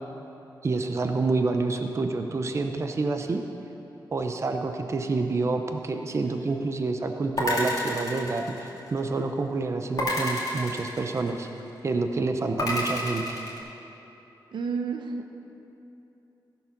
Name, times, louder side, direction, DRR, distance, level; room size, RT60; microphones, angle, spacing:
voice 1, 0.6-3.4 4.1-11.5 11.8-13.4, right 3 dB, 40° right, 6 dB, 0.6 m, -28 dB
sound 1, 7.4-9.1 10.0-11.6 12.6-13.6, left 1 dB, 50° left, 2.3 m, -29 dB
voice 2, 14.5-15.3, right 5 dB, 80° right, 5 dB, 0.8 m, -31 dB
15.0 x 7.1 x 6.0 m, 3.0 s
wide cardioid pair, 135°, 8 cm